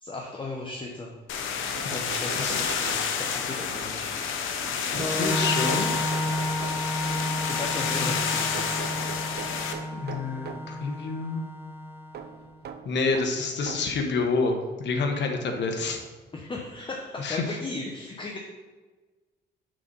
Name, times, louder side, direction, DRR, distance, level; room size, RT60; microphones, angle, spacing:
voice 1, 0.0-1.1 1.9-4.2 7.5-9.2 16.3-18.4, left 2 dB, 25° left, 0 dB, 0.9 m, -36 dB
sound 1, 1.3-9.7, left 6 dB, 85° left, 0.8 m, -29 dB
sound 2, 1.7-3.5 5.0-7.1 8.5-10.8 12.1-14.0 14.9-15.0 16.3-16.4 16.7-16.8, right 7 dB, 55° right, 0.6 m, -42 dB
voice 2, 1.8-2.6 4.9-5.9 8.0-8.1 9.9-11.4 12.8-16.0 17.2-17.4, left 4 dB, 65° left, 4 dB, 1.2 m, -28 dB
Organ, 4.9-12.5, left 1 dB, 10° right, 1.0 m, -32 dB
6.5 x 4.1 x 5.4 m, 1.3 s
cardioid pair, 90°, 20 cm